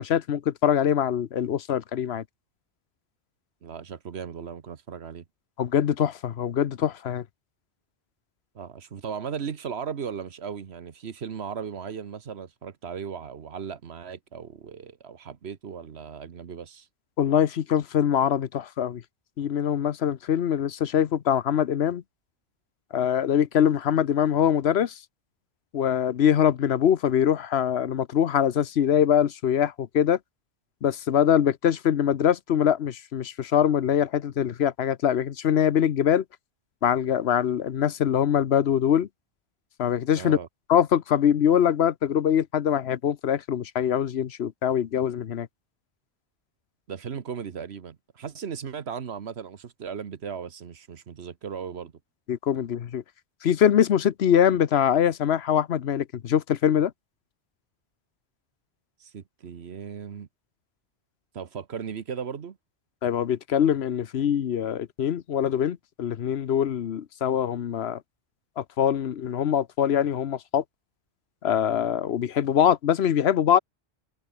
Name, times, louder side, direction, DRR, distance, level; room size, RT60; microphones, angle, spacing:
voice 1, 0.0-2.2 5.6-7.2 17.2-19.0 19.4-22.0 22.9-25.0 25.7-30.2 30.8-36.2 36.8-39.1 39.8-40.4 40.7-45.5 52.3-53.0 53.4-56.9 63.0-68.0 68.6-70.6 71.4-73.6, left 9 dB, 90° left, 1.1 m, -23 dB
voice 2, 3.6-5.2 8.5-16.9 40.2-40.5 46.9-51.9 59.0-60.3 61.3-62.6, right 7 dB, 90° right, 1.4 m, -37 dB
omnidirectional pair, 1.1 m